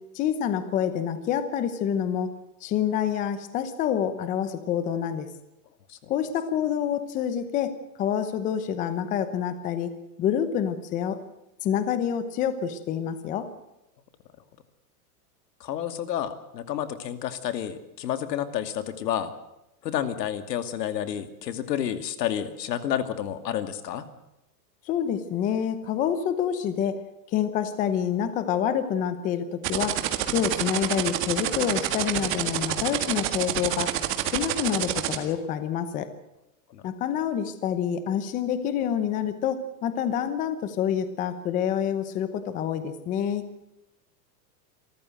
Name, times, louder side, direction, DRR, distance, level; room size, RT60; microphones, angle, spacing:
voice 1, 0.1-2.3 2.6-5.3 6.1-9.9 10.2-11.2 11.6-13.5 24.8-27.0 27.3-30.0 30.3-33.9 34.3-36.1 36.8-43.4, left 9 dB, 15° left, 11 dB, 0.8 m, -27 dB
voice 2, 15.6-19.3 19.8-24.0 36.7-36.8, left 10 dB, 85° left, 11 dB, 2.5 m, -30 dB
sound 1, 29.6-35.2, right 11 dB, 25° right, 1.8 m, -27 dB
27.0 x 14.0 x 7.8 m, 0.93 s
supercardioid pair, 170°, 48 cm